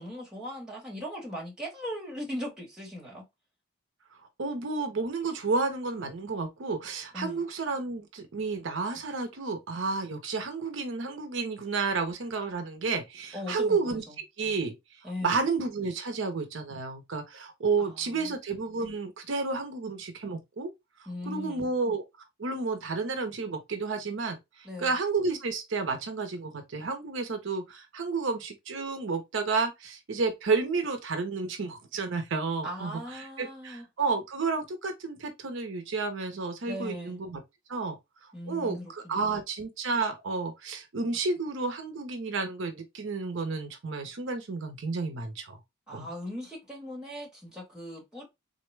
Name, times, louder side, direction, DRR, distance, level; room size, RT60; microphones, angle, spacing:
voice 1, 0.0-3.2 7.1-7.4 13.3-14.0 15.0-15.4 17.8-18.3 21.1-21.7 24.6-24.9 32.6-33.8 36.7-37.2 38.3-39.3 45.9-48.2, left 1 dB, 5° right, 1.3 m, -39 dB
voice 2, 4.4-14.0 14.4-14.7 15.2-20.7 21.3-22.0 22.4-37.4 37.7-38.0 38.5-45.6 45.9-46.1, right 4 dB, 70° right, 0.6 m, -31 dB
3.7 x 2.1 x 3.2 m
head